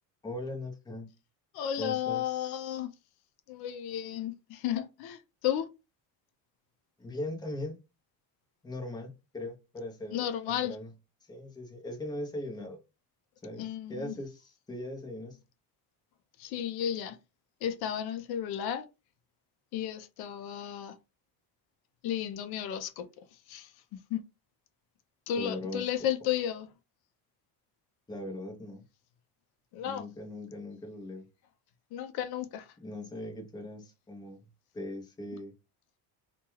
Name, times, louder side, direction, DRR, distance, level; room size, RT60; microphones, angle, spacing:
voice 1, 0.2-1.1 1.8-2.9 7.0-7.8 8.6-10.9 11.3-12.8 13.4-15.4 25.3-25.9 28.1-28.8 29.8-31.3 32.8-34.4 34.7-35.5, left 1 dB, 10° left, 0.6 m, -40 dB
voice 2, 1.5-2.9 3.5-5.2 5.4-5.7 10.1-10.8 13.6-14.1 16.4-17.2 17.6-18.8 19.7-20.9 22.0-23.1 23.5-24.2 25.3-26.7 29.7-30.0 31.9-32.6, left 10 dB, 75° left, 0.5 m, -33 dB
2.2 x 2.2 x 3.0 m
cardioid pair, 145°, 38 cm